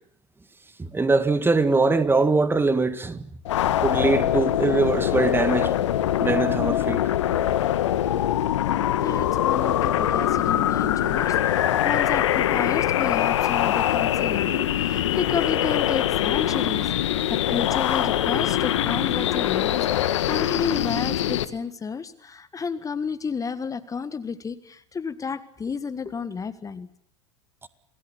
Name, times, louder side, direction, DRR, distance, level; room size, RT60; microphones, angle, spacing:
voice 1, 0.8-3.3 3.8-5.7 6.2-7.0, right 3 dB, 15° right, 1.9 m, -22 dB
sound 1, 3.4-21.4, left 12 dB, 70° left, 1.5 m, -23 dB
voice 2, 9.0-26.9, left 5 dB, 20° left, 1.6 m, -32 dB
28.0 x 20.0 x 8.7 m
hypercardioid pair, 80°, 16 cm